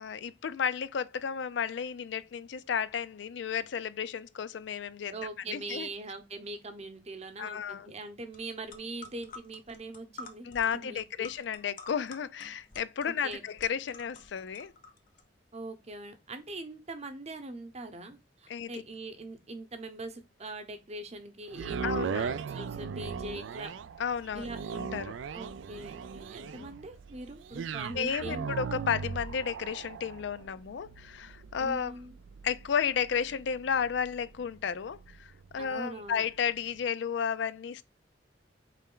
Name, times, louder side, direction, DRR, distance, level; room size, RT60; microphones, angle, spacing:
voice 1, 0.0-5.1 5.5-5.9 7.4-7.9 10.4-14.7 18.5-18.8 21.8-22.3 24.0-24.5 24.7-25.1 26.5-26.7 27.9-31.9 32.4-37.8, left 7 dB, 65° left, 0.4 m, -33 dB
voice 2, 5.1-11.3 13.1-13.4 15.5-23.7 24.3-24.6 25.3-28.6 31.6-32.1 35.6-36.3, right 2 dB, 35° right, 0.8 m, -42 dB
sound 1, 8.3-8.4 8.7-15.2, left 3 dB, 45° left, 0.7 m, -49 dB
sound 2, 21.5-35.7 36.2-36.3, right 6 dB, 90° right, 0.4 m, -39 dB
4.1 x 3.3 x 3.7 m
head